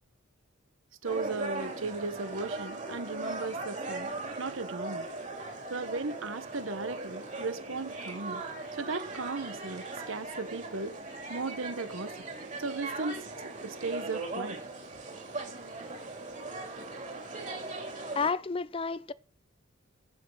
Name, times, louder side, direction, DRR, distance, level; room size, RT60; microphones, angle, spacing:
sound 1, 1.0-18.3, right 2 dB, 35° right, 3.4 m, -39 dB
voice 1, 1.0-4.1 4.4-5.1 5.7-8.4 8.7-10.9 11.3-12.1 12.6-14.6, right 3 dB, 65° right, 1.1 m, -36 dB
voice 2, 18.1-19.1, left 4 dB, 25° left, 0.4 m, -30 dB
14.5 x 6.3 x 6.3 m
head